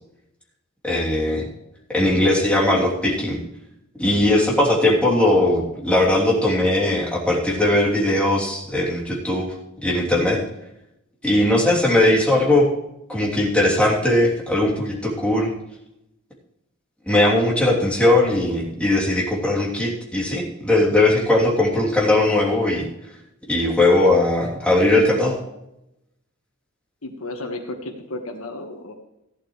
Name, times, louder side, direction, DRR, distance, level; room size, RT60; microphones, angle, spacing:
voice 1, 0.8-1.4 1.9-3.4 4.0-9.5 9.8-10.4 11.2-12.7 13.1-15.5 17.1-22.9 23.5-25.4, left 1 dB, 5° left, -4 dB, 3.1 m, -19 dB
voice 2, 27.0-28.9, left 2 dB, 70° left, 5 dB, 1.5 m, -33 dB
15.0 x 11.0 x 3.2 m, 0.86 s
head